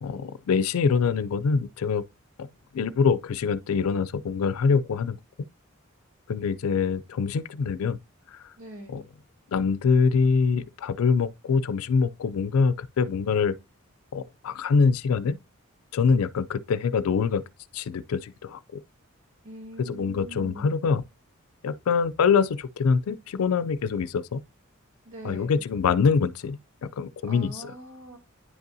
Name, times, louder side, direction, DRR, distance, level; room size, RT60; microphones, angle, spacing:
voice 1, 0.0-2.0 2.4-2.5 2.7-5.2 6.3-8.0 8.9-9.0 9.5-13.6 14.1-15.4 15.9-17.4 17.7-18.8 19.8-21.0 21.6-24.4 25.2-27.7, left 5 dB, 85° left, 0.4 m, -24 dB
voice 2, 8.6-9.0 19.4-20.7 25.0-25.6 27.2-28.2, right 1 dB, 75° right, 2.5 m, -42 dB
9.6 x 5.3 x 2.6 m
head